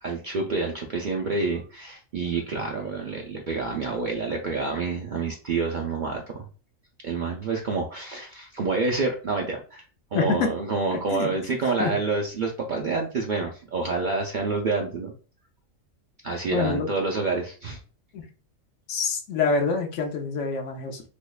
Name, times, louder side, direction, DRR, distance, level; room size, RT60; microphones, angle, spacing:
voice 1, 0.0-6.5 7.0-9.8 10.1-15.1 16.2-17.8, right 3 dB, 55° right, 1 dB, 0.5 m, -28 dB
voice 2, 10.1-10.5 10.9-11.3 11.8-11.9 16.5-16.9 18.1-18.3 18.9-21.0, left 4 dB, 70° left, 3 dB, 1.0 m, -26 dB
3.5 x 3.1 x 2.3 m, 0.37 s
omnidirectional pair, 1.3 m